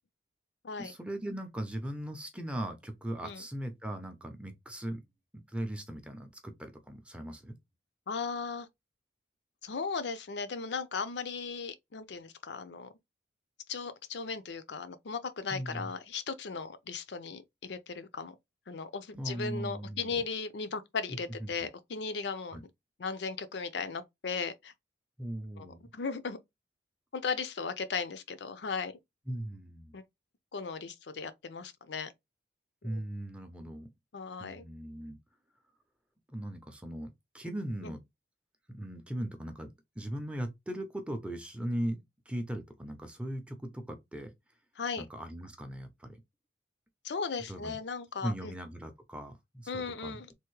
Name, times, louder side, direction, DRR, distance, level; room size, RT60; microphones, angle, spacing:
voice 1, 0.8-5.0 5.3-7.6 15.5-15.9 19.1-20.2 21.4-21.5 22.5-22.6 25.2-25.9 29.3-29.9 32.8-33.9 34.4-35.2 36.3-38.0 38.7-44.3 45.0-46.2 47.5-47.8 48.2-50.2, right 1 dB, 5° right, 0.6 m, -39 dB
voice 2, 8.1-8.7 9.6-12.9 13.7-18.4 18.7-22.6 23.0-24.7 25.6-25.7 25.9-26.4 27.1-28.9 29.9-30.0 30.5-32.1 32.9-33.0 34.1-34.6 37.8-37.9 44.8-45.1 47.0-48.5 49.7-50.3, left 5 dB, 70° left, 0.5 m, -37 dB
3.4 x 2.6 x 3.1 m
head